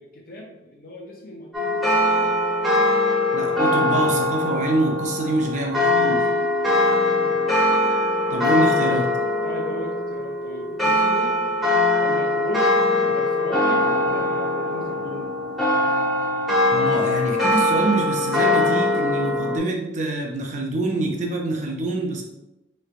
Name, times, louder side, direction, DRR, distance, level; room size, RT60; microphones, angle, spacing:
voice 1, 0.0-2.3 5.5-6.2 7.2-7.4 9.1-11.5 12.0-15.3, left 1 dB, 50° left, -2 dB, 0.5 m, -37 dB
sound 1, 1.5-19.6, left 1 dB, ahead, 0.9 m, -21 dB
voice 2, 3.3-6.2 8.3-9.1 16.7-22.2, right 2 dB, 40° right, 1 dB, 0.6 m, -25 dB
4.4 x 3.2 x 2.4 m, 0.95 s
head